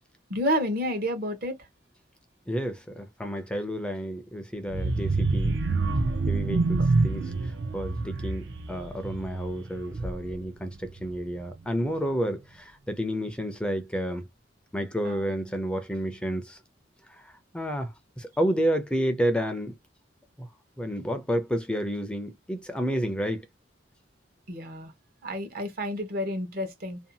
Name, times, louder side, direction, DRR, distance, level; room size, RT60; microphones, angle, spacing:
voice 1, 0.3-1.5 15.0-15.2 24.5-24.9 25.2-27.0, equal, 55° right, 0.9 m, -30 dB
voice 2, 2.5-5.6 6.3-14.3 14.7-16.6 17.1-19.8 20.4-20.5 20.8-23.5, equal, 5° left, 0.4 m, -30 dB
sound 1, 4.7-10.4 10.8-11.1 11.4-11.5, right 3 dB, 75° right, 0.5 m, -27 dB
2.6 x 2.2 x 2.7 m
head